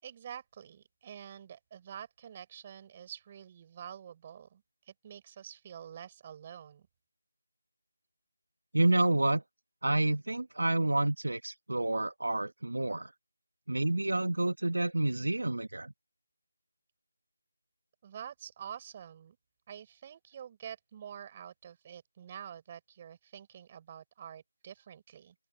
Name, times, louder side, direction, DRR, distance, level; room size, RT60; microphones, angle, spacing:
voice 1, 0.0-6.9 18.0-19.4 19.7-25.3, right 9 dB, 20° right, 6.7 m, -47 dB
voice 2, 8.7-9.4 9.8-13.1 13.7-15.9, right 2 dB, 85° right, 1.4 m, -29 dB
open air
figure-of-eight pair, 175°, 0 cm